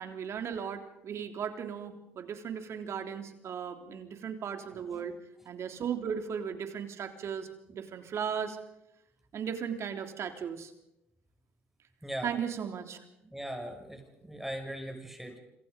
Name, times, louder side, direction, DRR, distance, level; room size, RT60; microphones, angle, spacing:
voice 1, 0.0-5.2 5.5-8.6 9.3-10.7 12.2-13.0, right 7 dB, 55° right, 6 dB, 3.5 m, -36 dB
voice 2, 4.7-5.0 12.0-12.3 13.3-15.4, right 1 dB, 5° right, 4 dB, 6.4 m, -40 dB
27.0 x 26.5 x 5.3 m, 0.87 s
supercardioid pair, 70°, 6 cm